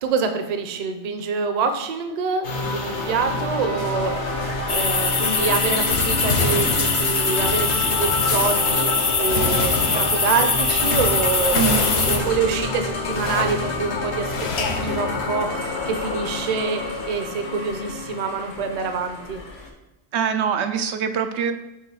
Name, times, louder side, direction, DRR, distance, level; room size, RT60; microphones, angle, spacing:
voice 1, 0.0-4.1 4.7-8.9 9.2-11.6 12.1-14.3 14.6-19.4, right 5 dB, 45° right, 7 dB, 0.6 m, -26 dB
sound 1, 2.4-19.7, left 2 dB, 90° left, 1.3 m, -28 dB
sound 2, 4.7-12.2, left 4 dB, 35° left, 0.4 m, -23 dB
sound 3, 5.9-15.7, left 4 dB, 70° left, 1.0 m, -29 dB
voice 2, 11.5-11.9 20.1-21.5, right 7 dB, 90° right, 8 dB, 0.9 m, -23 dB
6.6 x 3.5 x 4.7 m, 0.98 s
omnidirectional pair, 1.1 m